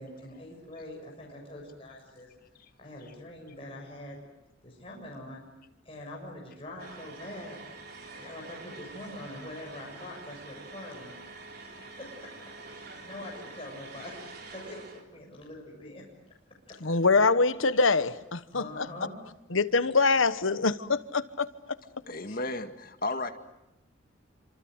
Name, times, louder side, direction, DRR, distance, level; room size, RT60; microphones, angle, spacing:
voice 1, 0.0-2.3 2.8-4.2 4.6-5.5 5.9-7.6 8.1-11.2 11.8-12.3 12.9-16.1 16.7-16.8 18.5-19.2, left 1 dB, 30° left, -2 dB, 7.1 m, -44 dB
sound 1, 6.8-15.0, right 3 dB, 50° right, 3.8 m, -46 dB
voice 2, 16.8-18.9 19.5-21.5, left 4 dB, 80° left, 13 dB, 1.2 m, -24 dB
voice 3, 22.1-23.3, left 2 dB, 45° left, 6 dB, 2.1 m, -33 dB
28.5 x 26.5 x 7.9 m, 0.90 s
head